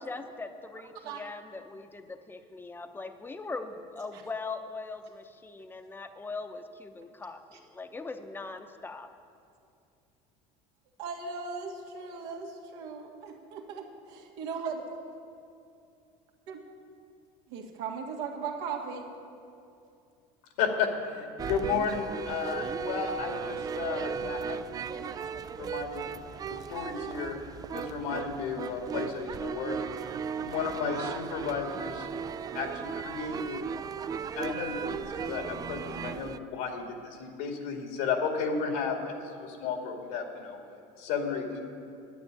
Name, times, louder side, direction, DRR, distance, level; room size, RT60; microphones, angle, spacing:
voice 1, 0.0-9.1, left 3 dB, 15° left, 7 dB, 0.8 m, -40 dB
voice 2, 11.0-14.8 16.5-16.6 17.5-19.0, right 5 dB, 85° right, 1 dB, 2.1 m, -38 dB
voice 3, 20.6-25.1 25.5-26.2 26.5-27.4 27.7-29.8 30.0-32.1 32.5-33.6 34.4-40.6 41.0-41.6, left 5 dB, 80° left, 3 dB, 2.3 m, -33 dB
sound 1, 21.4-36.4, right 6 dB, 25° right, 0.3 m, -36 dB
10.5 x 9.2 x 9.0 m, 2.6 s
cardioid pair, 130°, 16 cm